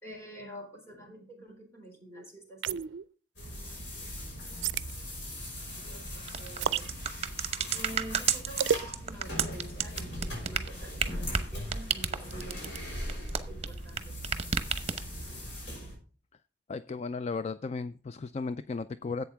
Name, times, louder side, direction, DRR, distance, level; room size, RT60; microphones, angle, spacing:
voice 1, 0.0-2.8 5.8-6.9 7.7-13.2 13.4-14.0, right 1 dB, 15° left, 1 dB, 3.9 m, -47 dB
sound 1, 2.6-3.0 4.6-4.9 6.6-6.9 8.6-8.9, right 8 dB, 90° right, 0.4 m, -29 dB
sound 2, 3.4-16.0, equal, 80° left, 5.4 m, -40 dB
sound 3, 6.3-14.0 14.2-15.3, right 7 dB, 35° right, 0.9 m, -31 dB
voice 2, 16.7-19.2, left 4 dB, 35° left, 13 dB, 0.3 m, -35 dB
11.5 x 8.2 x 3.5 m, 0.39 s
head